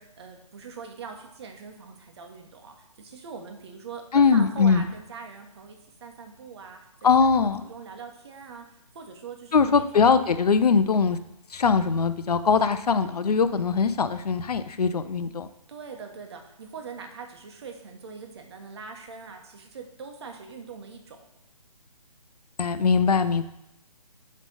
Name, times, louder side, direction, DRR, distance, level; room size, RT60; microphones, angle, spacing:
voice 1, 0.0-6.8 7.2-9.8 15.7-21.2, right 5 dB, 40° right, 3 dB, 1.1 m, -42 dB
voice 2, 4.1-4.9 7.0-7.6 9.5-11.2 11.5-15.5 22.6-23.4, left 5 dB, 70° left, 11 dB, 0.6 m, -21 dB
8.3 x 3.3 x 5.4 m, 0.84 s
figure-of-eight pair, 150°, 20 cm